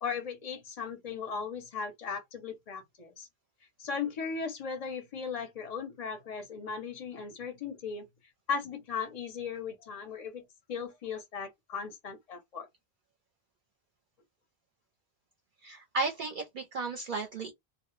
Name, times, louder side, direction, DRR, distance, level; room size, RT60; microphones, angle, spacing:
voice 1, 0.0-3.3 3.8-8.1 8.5-10.4 10.7-12.7, left 6 dB, 50° left, 0.5 m, -37 dB
voice 2, 15.6-17.5, right 3 dB, 60° right, 0.6 m, -34 dB
2.0 x 2.0 x 3.0 m
omnidirectional pair, 1.1 m